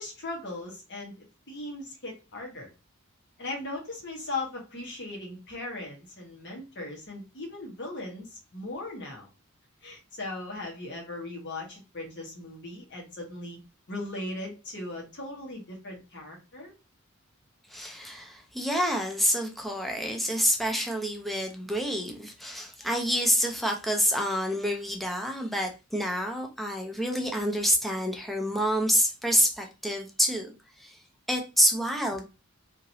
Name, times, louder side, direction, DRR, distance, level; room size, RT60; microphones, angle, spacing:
voice 1, 0.0-2.7 3.4-9.3 9.8-13.6 13.9-16.7, left 2 dB, 55° left, 1.3 m, -38 dB
voice 2, 17.7-30.5 30.8-31.0 31.3-32.2, equal, ahead, 0.6 m, -27 dB
2.9 x 2.9 x 2.7 m
head